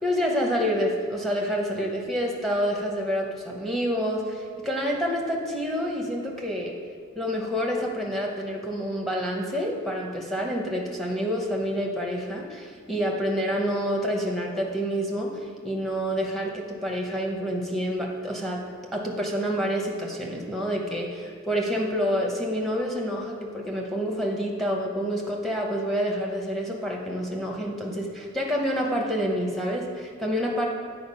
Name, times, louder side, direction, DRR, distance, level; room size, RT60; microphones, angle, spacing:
voice 1, 0.0-6.8 7.2-18.6 18.9-30.7, equal, ahead, -1 dB, 0.8 m, -28 dB
8.7 x 4.5 x 5.5 m, 2.1 s
head